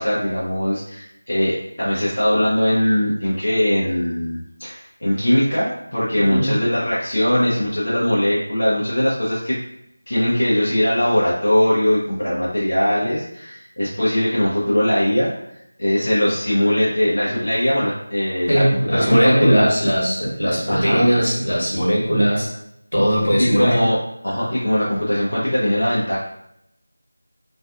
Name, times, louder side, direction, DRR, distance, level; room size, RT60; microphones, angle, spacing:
voice 1, 0.0-9.6 10.1-15.3 15.8-19.6 20.7-21.1 23.4-24.0 24.2-26.2, equal, 65° left, -8 dB, 0.6 m, -20 dB
voice 2, 18.5-22.5 22.9-23.8, equal, 90° left, -4 dB, 1.2 m, -18 dB
2.4 x 2.3 x 2.4 m, 0.77 s
figure-of-eight pair, 180°, 0 cm